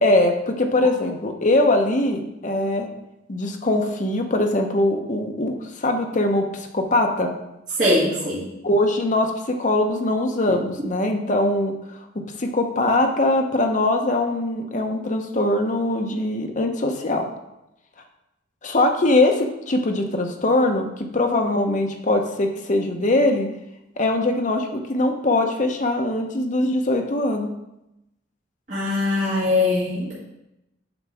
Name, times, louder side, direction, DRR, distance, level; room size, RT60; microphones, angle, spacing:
voice 1, 0.0-2.9 3.3-7.3 8.6-11.7 12.4-17.3 18.6-23.5 24.0-27.5, left 2 dB, 40° left, 4 dB, 0.8 m, -22 dB
voice 2, 7.8-8.4 28.7-30.1, left 2 dB, 40° right, -9 dB, 1.8 m, -21 dB
8.0 x 5.8 x 3.5 m, 0.90 s
head